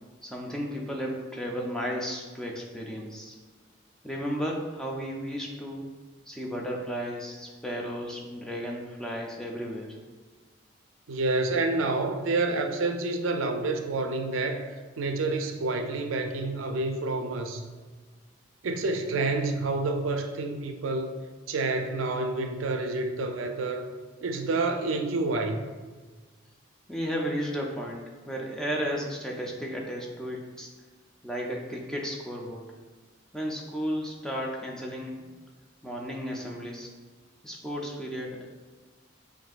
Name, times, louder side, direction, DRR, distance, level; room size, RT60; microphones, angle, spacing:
voice 1, 0.2-3.4 4.0-5.9 6.3-9.9 26.9-30.7 31.2-32.6 33.3-35.3 35.8-36.9 37.4-38.5, equal, 5° left, -2 dB, 0.4 m, -34 dB
voice 2, 11.1-14.7 15.0-17.6 18.6-21.1 21.5-23.9 24.2-25.6, right 3 dB, 90° right, 6 dB, 0.4 m, -28 dB
6.0 x 2.6 x 2.4 m, 1.4 s
head